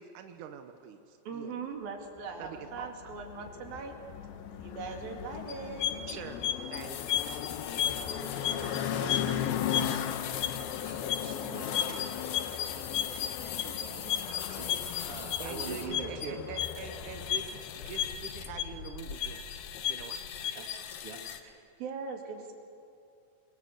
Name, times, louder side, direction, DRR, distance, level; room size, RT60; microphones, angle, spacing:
voice 1, 0.0-1.6 2.4-2.9 6.1-6.4 6.7-7.0 15.4-19.4 19.9-20.2, right 7 dB, 75° right, 7 dB, 1.8 m, -44 dB
voice 2, 1.3-4.0 4.5-6.2 7.9-8.7 9.0-9.4 13.6-14.2 14.5-14.6 21.4-22.6, right 5 dB, 60° right, 3 dB, 3.8 m, -42 dB
sound 1, 2.4-19.9, left 9 dB, 70° left, 2.5 m, -38 dB
sound 2, 5.5-21.4, left 9 dB, 90° left, 1.6 m, -35 dB
voice 3, 8.3-8.9 10.1-10.2 10.8-12.0 14.2-14.7 15.0-16.4 20.5-21.2, right 4 dB, 35° right, 2 dB, 2.8 m, -44 dB
26.0 x 23.5 x 7.8 m, 2.5 s
omnidirectional pair, 5.1 m